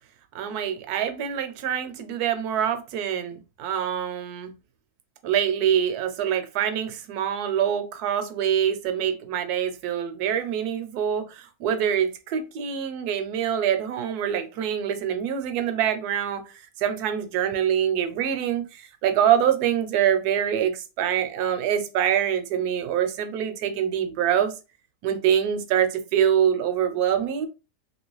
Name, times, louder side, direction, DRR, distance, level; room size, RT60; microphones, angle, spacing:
voice 1, 0.3-4.5 5.2-16.4 16.8-24.5 25.0-27.5, right 9 dB, 70° right, 1.0 m, -25 dB
2.9 x 2.8 x 3.1 m
omnidirectional pair, 1.8 m